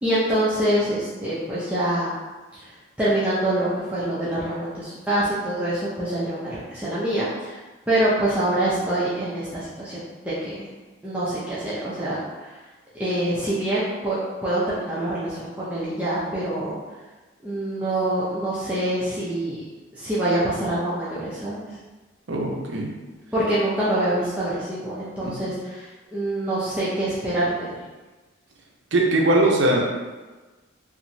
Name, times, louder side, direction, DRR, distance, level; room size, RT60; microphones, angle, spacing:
voice 1, 0.0-2.1 2.5-2.7 3.0-7.6 7.9-10.6 11.0-12.6 13.0-16.8 17.4-19.6 19.9-21.8 23.3-27.7, right 1 dB, 5° right, -10 dB, 0.4 m, -25 dB
voice 2, 22.3-22.9 25.2-25.3 28.9-29.9, right 1 dB, 60° right, -1 dB, 0.5 m, -20 dB
2.9 x 2.5 x 2.6 m, 1.2 s
head